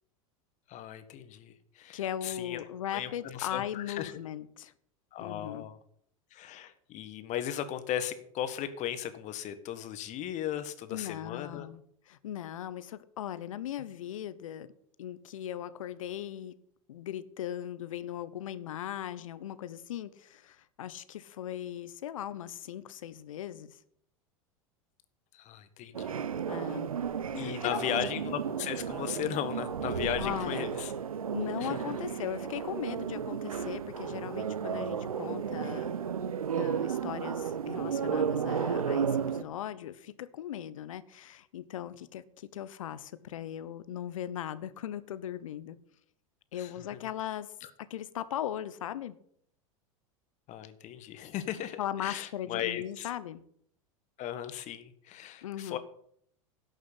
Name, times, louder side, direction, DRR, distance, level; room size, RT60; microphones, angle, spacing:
voice 1, 0.7-2.6 2.9-4.1 5.1-5.8 6.3-11.7 25.3-26.1 27.3-30.9 31.6-31.8 46.6-46.7 50.5-53.1 54.2-55.8, left 11 dB, 45° left, 11 dB, 1.6 m, -36 dB
voice 2, 1.9-4.7 5.2-5.7 10.9-14.7 15.0-16.5 16.9-23.8 26.5-26.9 27.3-28.0 30.2-30.7 31.3-35.9 36.6-45.8 46.5-47.5 47.8-49.2 51.8-53.4 55.4-55.8, left 11 dB, 70° left, 15 dB, 1.0 m, -38 dB
sound 1, 25.9-39.4, right 7 dB, 85° right, 0.7 m, -33 dB
11.5 x 6.4 x 8.5 m, 0.67 s
hypercardioid pair, 85°, 18 cm